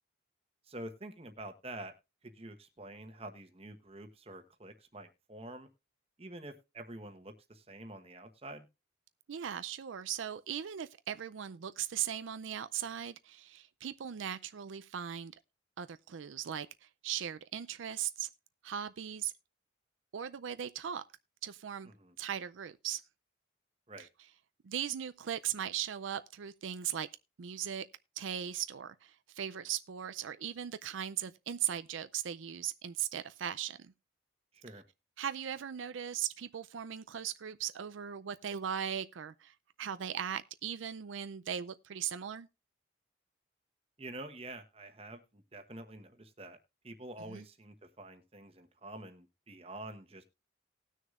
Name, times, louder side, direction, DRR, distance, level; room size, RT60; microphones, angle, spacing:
voice 1, 0.7-1.9 2.2-5.7 6.2-8.7 21.8-22.1 23.9-24.1 34.5-34.8 44.0-46.6 46.8-50.2, right 1 dB, 30° right, 1.1 m, -47 dB
voice 2, 9.3-15.3 15.8-18.3 18.6-19.3 20.1-21.0 21.4-21.9 22.2-23.0 24.0-24.1 24.6-27.1 27.4-27.9 28.2-33.9 35.2-42.5 47.3-47.4, right 9 dB, 85° right, 0.4 m, -38 dB
19.0 x 6.4 x 2.4 m
head